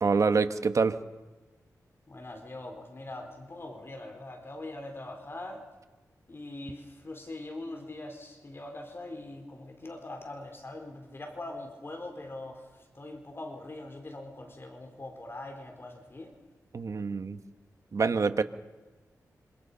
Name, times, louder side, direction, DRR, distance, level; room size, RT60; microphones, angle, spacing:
voice 1, 0.0-1.0 16.7-17.4 17.9-18.4, right 4 dB, 55° right, 10 dB, 1.4 m, -26 dB
voice 2, 2.1-5.6 6.3-12.7 12.9-16.3, left 2 dB, 35° left, 4 dB, 4.5 m, -42 dB
27.0 x 26.5 x 5.7 m, 1.2 s
cardioid pair, 80°, 6 cm